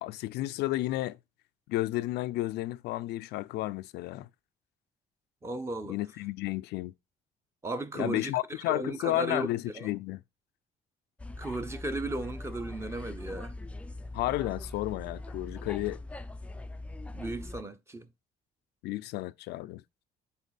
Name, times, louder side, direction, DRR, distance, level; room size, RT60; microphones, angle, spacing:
voice 1, 0.0-1.2 1.7-4.3 5.9-6.9 7.9-10.2 14.1-16.0 18.8-19.8, left 17 dB, 80° left, 0.5 m, -32 dB
voice 2, 5.4-6.0 7.6-8.4 8.7-9.5 9.7-9.9 11.4-13.5 17.1-18.1, right 2 dB, 15° right, 0.8 m, -35 dB
sound 1, 11.2-17.6, left 2 dB, 5° left, 0.4 m, -41 dB
7.3 x 4.2 x 4.1 m
cardioid pair, 110°, 17 cm